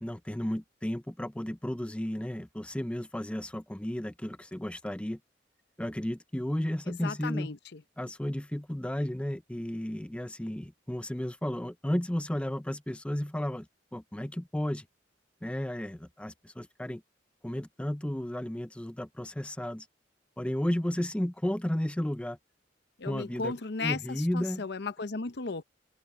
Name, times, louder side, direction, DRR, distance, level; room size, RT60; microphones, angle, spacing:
voice 1, 0.0-5.2 5.8-7.5 8.0-13.7 13.9-14.9 15.4-17.0 17.4-19.9 20.4-22.4 23.0-23.5 23.8-24.7, left 1 dB, 5° left, 0.5 m, -33 dB
voice 2, 6.9-7.8 23.0-25.6, left 4 dB, 60° left, 0.8 m, -35 dB
head